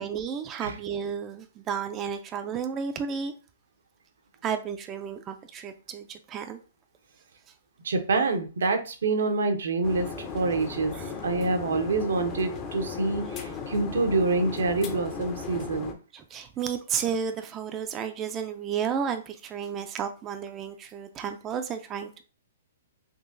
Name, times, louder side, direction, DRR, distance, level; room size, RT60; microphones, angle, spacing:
voice 1, 0.0-3.3 4.4-6.6 10.9-11.2 16.1-22.2, right 7 dB, 25° right, 0.3 m, -32 dB
voice 2, 7.8-10.1 10.3-10.9 11.2-16.0, right 3 dB, 80° right, 0.7 m, -26 dB
sound 1, 9.8-15.9, left 5 dB, 30° left, 0.6 m, -36 dB
3.7 x 2.7 x 2.6 m
hypercardioid pair, 140°, 0 cm